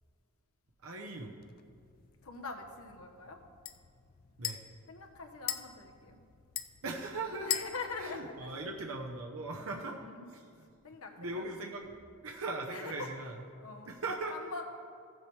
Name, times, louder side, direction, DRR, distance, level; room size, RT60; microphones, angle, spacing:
voice 1, 0.8-1.3 4.4-4.6 6.8-7.6 8.0-10.0 10.3-10.7 11.2-11.9 12.2-13.3 13.9-14.3, right 3 dB, 70° right, 1 dB, 0.8 m, -39 dB
sound 1, 1.4-9.2, left 11 dB, 40° left, 0.5 m, -43 dB
voice 2, 2.2-3.4 4.9-6.2 7.4-8.6 9.5-10.3 10.8-11.4 12.7-13.1 13.6-13.9 14.3-14.6, left 4 dB, 75° left, 4 dB, 1.1 m, -43 dB
15.5 x 7.4 x 3.3 m, 2.3 s
head